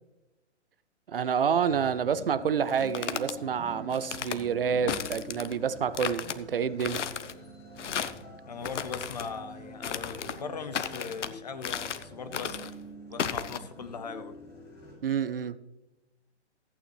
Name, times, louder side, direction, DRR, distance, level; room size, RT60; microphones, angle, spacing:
voice 1, 1.1-7.0 15.0-15.6, right 7 dB, 55° right, 0.5 m, -28 dB
sound 1, 1.7-15.0, equal, 10° left, 2.7 m, -46 dB
sound 2, 2.7-3.3 3.9-4.4 4.9-5.6 5.9-6.4 6.8-7.3 7.8-8.2 8.6-9.3 9.8-10.4 10.7-11.3 11.6-12.1 12.3-12.7 13.2-13.6, left 8 dB, 85° left, 0.9 m, -34 dB
voice 2, 8.5-12.7 13.1-14.4, left 5 dB, 35° left, 0.7 m, -39 dB
14.5 x 9.1 x 3.1 m
hypercardioid pair, 175°, 35 cm